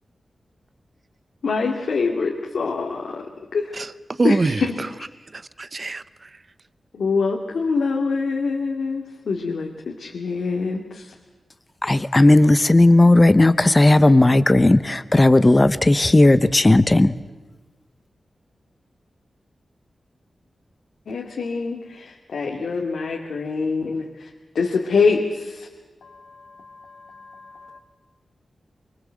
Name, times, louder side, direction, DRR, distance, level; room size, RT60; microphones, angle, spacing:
voice 1, 1.4-3.3 3.5-3.8 4.2-5.1 6.9-11.1 21.1-24.3 24.5-25.7 26.0-27.8, left 4 dB, 90° left, 2.4 m, -25 dB
voice 2, 4.2-4.6 5.6-6.0, right 3 dB, 40° right, 0.8 m, -22 dB
voice 3, 11.8-17.1, left 2 dB, 20° left, 0.8 m, -15 dB
24.5 x 24.0 x 7.6 m
wide cardioid pair, 115°, 0 cm